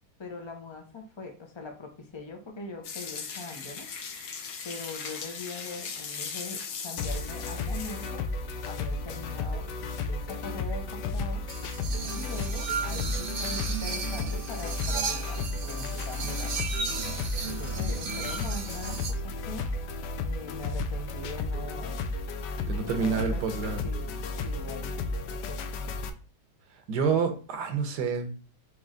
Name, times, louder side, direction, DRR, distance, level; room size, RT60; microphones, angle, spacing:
voice 1, 0.2-3.9 4.6-8.3 8.6-9.7 10.1-11.4 12.1-16.7 17.4-19.7 20.2-22.0 22.8-23.4 23.8-24.1 24.4-25.6, left 3 dB, 45° left, 3 dB, 0.3 m, -41 dB
sound 1, 2.8-8.1, left 6 dB, 60° left, 1.1 m, -38 dB
sound 2, 7.0-26.1, left 3 dB, 85° left, 1.2 m, -33 dB
sound 3, 11.5-19.1, right 5 dB, 60° right, 0.5 m, -35 dB
voice 2, 22.7-23.8 26.9-28.3, right 5 dB, 75° right, 7 dB, 1.4 m, -28 dB
4.5 x 3.1 x 3.7 m, 0.36 s
omnidirectional pair, 1.8 m